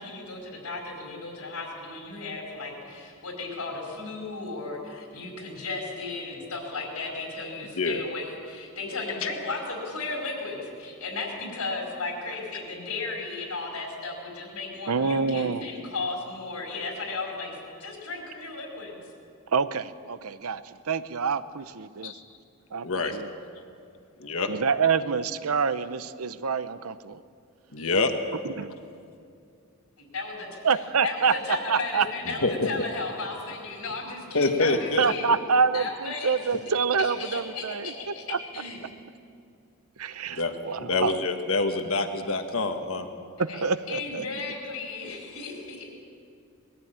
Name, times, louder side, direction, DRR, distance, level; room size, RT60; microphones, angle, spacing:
voice 1, 0.0-19.0 30.0-30.5 31.0-35.3 35.7-36.4 37.0-38.8 43.5-45.8, left 3 dB, 90° left, -1 dB, 4.7 m, -35 dB
voice 2, 14.9-15.7 19.5-22.1 22.7-22.9 23.1-23.3 24.5-27.2 28.4-28.7 30.6-31.3 31.7-32.1 35.0-37.9 38.3-38.4 40.0-41.2 43.4-44.2, right 5 dB, 75° right, 14 dB, 0.7 m, -26 dB
voice 3, 22.8-23.2 24.2-24.5 27.7-28.1 32.3-32.7 34.3-35.1 35.5-35.6 40.4-40.5 40.8-43.1, left 3 dB, 65° left, 6 dB, 1.4 m, -26 dB
20.5 x 14.5 x 8.9 m, 2.5 s
head